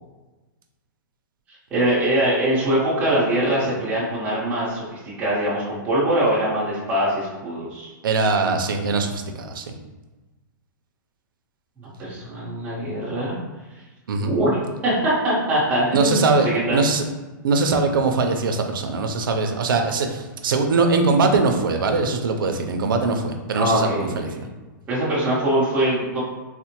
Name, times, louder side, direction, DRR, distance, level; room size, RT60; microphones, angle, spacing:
voice 1, 1.7-7.9 11.8-13.3 14.2-14.6 14.8-16.8 19.7-19.8 23.5-24.1 24.9-26.2, right 1 dB, 10° right, -9 dB, 0.9 m, -22 dB
voice 2, 8.0-9.8 14.1-14.3 15.9-16.5 16.7-17.0 17.4-24.5, right 3 dB, 90° right, 5 dB, 0.5 m, -21 dB
4.1 x 2.1 x 2.9 m, 1.2 s
hypercardioid pair, 175°, 11 cm